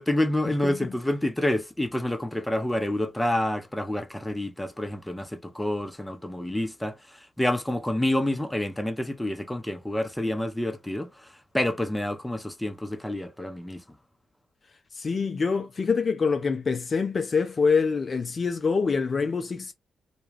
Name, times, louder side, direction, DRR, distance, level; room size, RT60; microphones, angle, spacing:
voice 1, 0.0-13.8, left 1 dB, 10° left, 0.6 m, -28 dB
voice 2, 14.9-19.7, left 5 dB, 50° left, 0.4 m, -25 dB
2.3 x 2.2 x 3.1 m
supercardioid pair, 45°, 0 cm